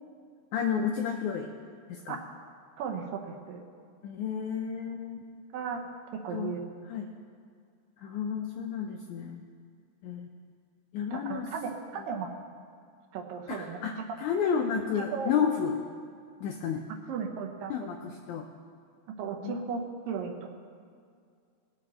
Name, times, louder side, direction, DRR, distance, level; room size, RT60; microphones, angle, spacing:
voice 1, 0.5-1.5 1.9-2.2 4.0-5.4 6.3-6.5 6.9-7.1 8.0-9.5 10.0-10.3 10.9-11.5 12.0-12.1 13.5-15.8 16.4-16.8 17.7-18.5 19.4-19.6, left 7 dB, 80° left, 3 dB, 1.7 m, -31 dB
voice 2, 2.8-3.7 5.5-5.8 6.1-6.7 11.1-12.3 13.1-13.8 15.0-15.3 17.1-17.9 19.2-20.5, right 6 dB, 75° right, 2 dB, 2.6 m, -35 dB
19.5 x 7.4 x 4.3 m, 2.2 s
omnidirectional pair, 4.2 m